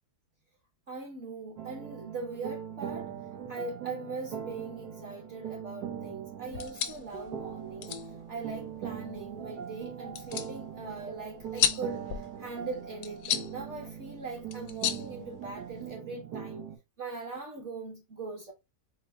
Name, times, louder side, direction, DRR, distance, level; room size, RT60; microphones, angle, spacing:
voice 1, 0.9-3.1 3.5-7.9 8.3-16.7 17.0-18.5, right 3 dB, 55° right, 1.0 m, -41 dB
sound 1, 1.6-16.8, right 8 dB, 90° right, 1.3 m, -41 dB
sound 2, 6.5-15.9, left 10 dB, 70° left, 0.9 m, -36 dB
4.5 x 2.0 x 3.3 m
omnidirectional pair, 1.6 m